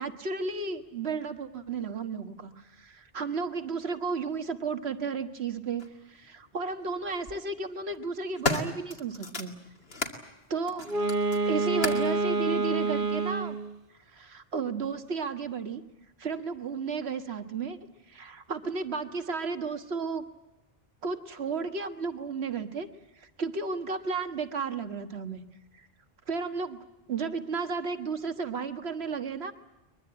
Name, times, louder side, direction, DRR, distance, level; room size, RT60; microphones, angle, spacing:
voice 1, 0.0-9.6 10.5-10.9 11.4-13.6 14.1-15.8 16.2-17.8 18.1-20.2 21.0-22.9 23.2-25.4 25.7-25.9 26.3-29.5, right 4 dB, 90° right, 9 dB, 1.7 m, -33 dB
sound 1, 5.8-5.9 7.0-7.4 7.9-10.2 10.7-12.2 13.0-13.1, left 3 dB, 70° left, 2.5 m, -34 dB
Wind instrument woodwind instrument, 10.8-13.7, right 3 dB, 60° right, 1.2 m, -27 dB
22.5 x 22.0 x 8.7 m, 0.95 s
omnidirectional pair, 1.0 m